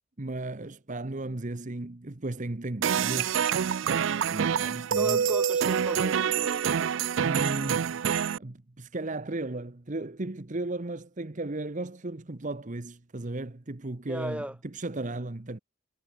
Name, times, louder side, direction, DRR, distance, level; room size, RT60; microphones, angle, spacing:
voice 1, 0.2-5.3 7.2-8.0 8.4-15.6, right 2 dB, 40° right, 1.0 m, -35 dB
sound 1, 2.8-8.4, right 7 dB, 70° right, 0.4 m, -26 dB
voice 2, 5.0-6.9 14.0-14.5, equal, 5° right, 2.7 m, -36 dB
head